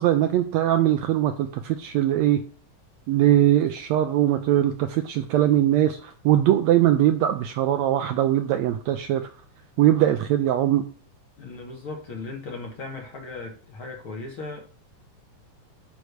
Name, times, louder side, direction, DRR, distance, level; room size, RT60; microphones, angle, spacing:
voice 1, 0.0-2.4 3.1-9.3 9.8-10.8, right 12 dB, 85° right, 8 dB, 1.6 m, -21 dB
voice 2, 11.4-14.6, left 3 dB, 50° left, 2 dB, 1.7 m, -37 dB
9.5 x 3.3 x 6.6 m, 0.44 s
omnidirectional pair, 3.7 m